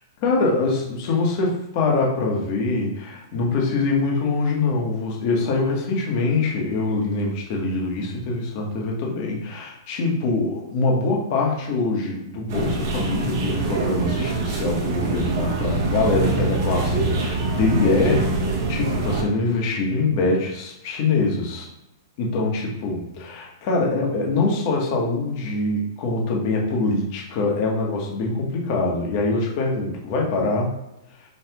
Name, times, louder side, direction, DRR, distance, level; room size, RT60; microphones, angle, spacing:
voice 1, 0.2-21.7 22.2-30.7, left 3 dB, 35° left, -1 dB, 1.0 m, -24 dB
sound 1, 12.5-19.2, right 2 dB, 45° right, 0.9 m, -24 dB
5.3 x 2.4 x 2.9 m, 0.89 s
hypercardioid pair, 165°, 2 cm